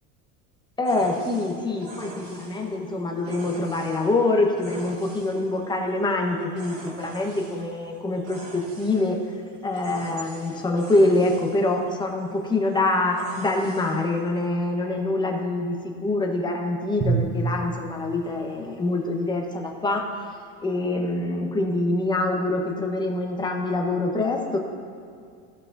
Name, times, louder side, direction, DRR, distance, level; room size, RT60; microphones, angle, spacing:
voice 1, 0.8-9.2 9.6-20.1 20.6-24.6, left 2 dB, 10° left, 1 dB, 1.2 m, -25 dB
sound 1, 0.8-14.5, right 3 dB, 50° right, 1.7 m, -45 dB
Drum, 17.0-19.4, right 4 dB, 20° right, 1.1 m, -29 dB
16.5 x 5.8 x 2.7 m, 2.3 s
supercardioid pair, 130°, 36 cm